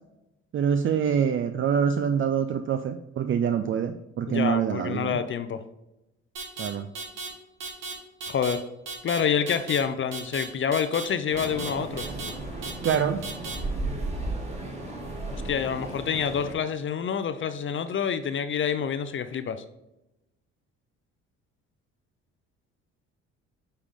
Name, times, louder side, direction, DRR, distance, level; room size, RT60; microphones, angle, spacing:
voice 1, 0.5-5.2 6.6-6.8 12.8-13.2, right 7 dB, 40° right, 8 dB, 0.5 m, -25 dB
voice 2, 4.3-5.6 8.3-8.6 9.0-12.0 15.3-19.6, left 7 dB, 40° left, 11 dB, 0.6 m, -27 dB
sound 1, 6.4-6.7 7.0-7.3 7.6-7.9 8.2-8.5 8.9-9.2 9.5-9.8 10.1-10.4 10.7-11.0 11.4-11.7 12.0-12.3 12.6-13.0 13.2-13.6, right 4 dB, 80° right, 1.6 m, -35 dB
sound 2, 11.3-16.5, right 2 dB, 20° right, 2.1 m, -34 dB
9.6 x 3.4 x 3.6 m, 0.92 s
supercardioid pair, 70°, 31 cm